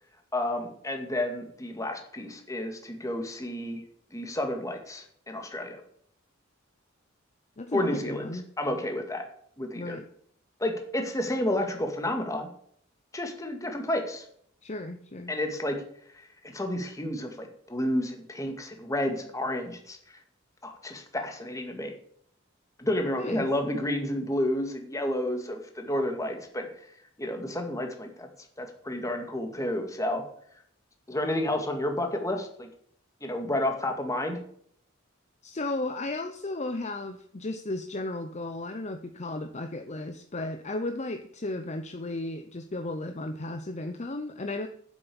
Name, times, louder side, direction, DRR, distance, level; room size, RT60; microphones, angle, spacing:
voice 1, 0.3-3.8 4.1-5.8 7.7-9.2 9.6-10.0 10.6-12.5 13.1-14.2 15.3-15.8 16.1-16.3 16.5-20.0 20.6-21.9 22.8-26.7 27.2-28.3 28.6-30.2 31.1-32.7 33.2-34.4, left 1 dB, 15° left, 4 dB, 2.1 m, -31 dB
voice 2, 7.6-8.5 9.7-10.0 14.6-15.3 23.2-23.5 35.4-44.7, left 2 dB, 35° left, 7 dB, 0.8 m, -34 dB
10.0 x 7.8 x 7.0 m, 0.64 s
head